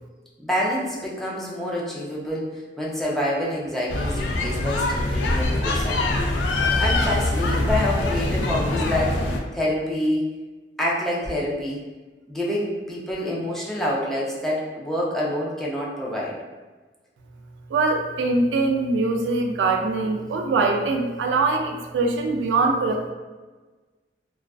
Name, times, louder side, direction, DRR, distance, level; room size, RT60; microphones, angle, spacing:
voice 1, 0.4-6.0 6.8-9.3 9.5-10.2 10.8-11.8 12.3-16.4, left 1 dB, ahead, -6 dB, 0.4 m, -27 dB
sound 1, 3.9-9.4, left 2 dB, 75° left, 0.3 m, -23 dB
voice 2, 17.7-23.1, right 3 dB, 85° right, 3 dB, 0.3 m, -22 dB
2.3 x 2.3 x 2.3 m, 1.3 s
head